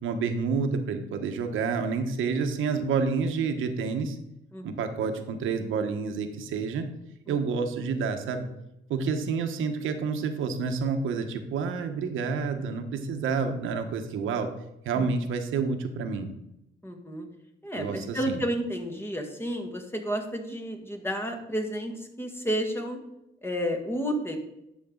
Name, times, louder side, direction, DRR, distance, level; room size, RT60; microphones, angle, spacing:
voice 1, 0.0-4.2 4.6-6.9 7.3-8.5 8.9-14.5 14.8-16.3 17.7-18.4, right 5 dB, 85° right, 6 dB, 1.3 m, -29 dB
voice 2, 7.3-7.6 14.9-15.1 16.8-17.3 17.6-23.0 23.4-24.4, equal, 10° left, 4 dB, 1.8 m, -31 dB
11.0 x 7.0 x 3.9 m, 0.85 s
cardioid pair, 90°, 20 cm